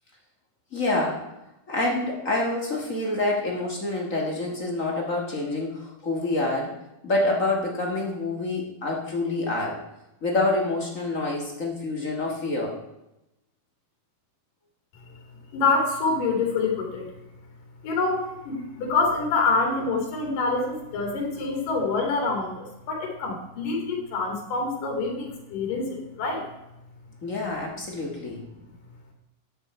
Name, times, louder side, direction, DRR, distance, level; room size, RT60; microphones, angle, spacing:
voice 1, 0.7-1.3 1.7-6.8 7.0-9.8 10.2-12.8 27.2-28.4, left 2 dB, 40° left, -1 dB, 1.2 m, -27 dB
voice 2, 15.5-17.1 17.8-26.5, left 3 dB, 85° left, 1 dB, 4.0 m, -26 dB
13.0 x 9.2 x 4.3 m, 0.90 s
omnidirectional pair, 3.7 m